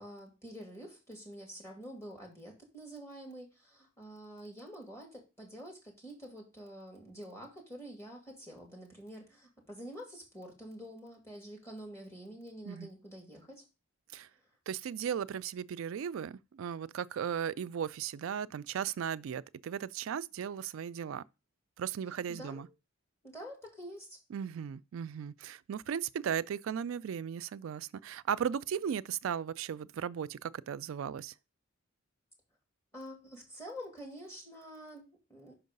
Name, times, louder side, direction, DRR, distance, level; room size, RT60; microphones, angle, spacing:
voice 1, 0.0-13.6 22.3-22.7 23.2-24.2 32.9-35.5, equal, 15° left, 2.2 m, -47 dB
voice 2, 14.7-21.2 21.8-22.7 24.3-31.3, right 8 dB, 70° right, 0.3 m, -36 dB
5.9 x 4.6 x 5.3 m
head